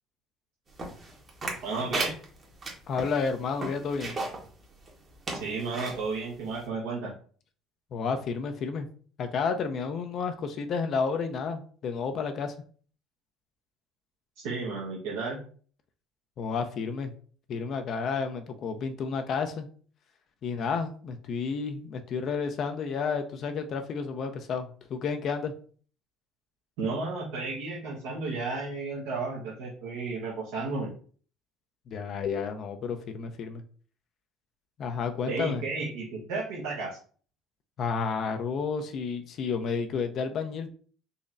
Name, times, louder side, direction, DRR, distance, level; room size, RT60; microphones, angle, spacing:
sound 1, 0.8-4.5 4.9-5.0 5.2-6.0 6.6-6.7, right 2 dB, 40° right, 1.2 m, -34 dB
voice 1, 1.6-2.1 5.3-7.1 14.4-15.4 26.8-30.9 35.3-37.0, right 3 dB, 75° right, -6 dB, 1.0 m, -33 dB
voice 2, 2.9-4.2 7.9-8.9 9.2-12.5 16.4-17.1 17.5-19.7 20.4-25.5 31.9-33.6 34.8-35.6 37.8-40.7, left 5 dB, 55° left, 6 dB, 0.5 m, -31 dB
4.0 x 3.0 x 2.5 m, 0.44 s
hypercardioid pair, 60°, 0 cm